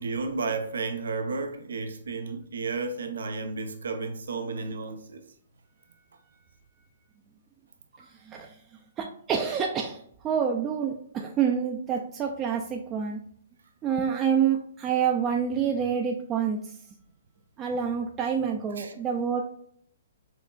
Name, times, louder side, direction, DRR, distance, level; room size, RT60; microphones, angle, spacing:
voice 1, 0.0-5.2 8.0-8.1 8.4-8.5 18.8-18.9, right 4 dB, 80° right, 0.6 m, -32 dB
voice 2, 8.3-8.6 9.0-13.2 13.8-16.8 17.6-19.4, right 7 dB, 20° right, 0.4 m, -27 dB
5.6 x 2.3 x 2.3 m
hypercardioid pair, 140°, 0 cm